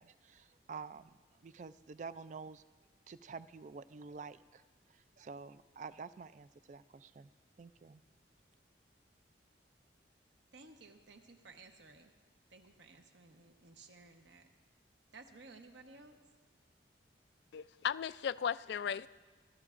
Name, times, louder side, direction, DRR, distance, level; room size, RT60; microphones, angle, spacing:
voice 1, 0.0-2.6 3.1-4.6 4.9-7.3 7.6-8.0, right 5 dB, 40° right, 14 dB, 0.3 m, -49 dB
voice 2, 10.5-12.1 12.5-14.5 15.1-16.2, right 3 dB, 75° right, 4 dB, 1.1 m, -56 dB
voice 3, 17.5-19.1, left 7 dB, 65° left, 16 dB, 0.3 m, -36 dB
26.0 x 13.0 x 2.5 m, 1.4 s
head